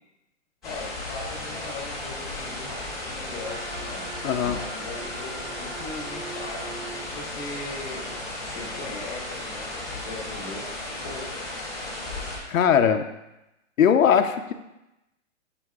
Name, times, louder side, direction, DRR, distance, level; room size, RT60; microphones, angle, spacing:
voice 1, 0.6-10.7 11.0-11.5, left 2 dB, 15° left, -1 dB, 1.1 m, -39 dB
sound 1, 0.6-12.4, left 2 dB, ahead, 0.5 m, -35 dB
Wind instrument woodwind instrument, 3.4-7.1, right 5 dB, 25° right, 1.7 m, -42 dB
voice 2, 4.2-4.6 12.5-13.1 13.8-14.5, left 8 dB, 85° left, 7 dB, 0.8 m, -20 dB
13.0 x 5.7 x 2.4 m, 0.95 s
hypercardioid pair, 170°, 39 cm